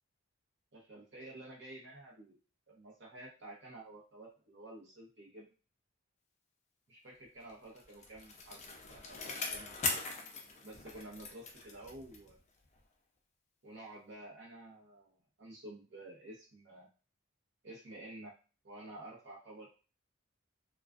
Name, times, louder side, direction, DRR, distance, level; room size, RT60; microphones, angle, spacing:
voice 1, 0.7-2.4 2.7-5.5 6.9-10.1 10.6-12.4 13.6-16.9 17.6-18.3 18.6-19.8, right 1 dB, 60° right, -4 dB, 0.8 m, -51 dB
Bicycle, 7.5-12.4 12.8-12.9, left 4 dB, 35° left, 0.4 m, -41 dB
2.3 x 2.3 x 2.4 m, 0.34 s
head